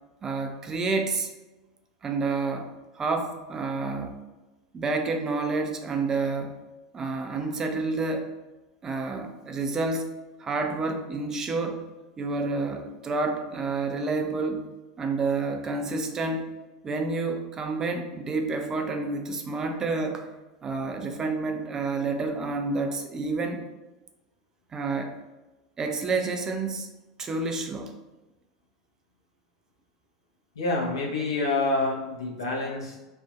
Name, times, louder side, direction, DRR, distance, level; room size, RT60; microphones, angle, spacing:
voice 1, 0.2-1.3 2.0-4.1 4.7-6.6 6.9-8.3 8.8-10.1 10.4-11.8 12.2-14.7 15.0-16.5 16.8-20.3 20.6-23.6 24.7-25.1 25.8-26.9 27.2-27.9, right 3 dB, 25° right, 4 dB, 0.3 m, -29 dB
voice 2, 30.5-33.0, left 3 dB, 80° left, -3 dB, 0.6 m, -27 dB
2.6 x 2.1 x 2.4 m, 1.1 s
figure-of-eight pair, 85°, 2 cm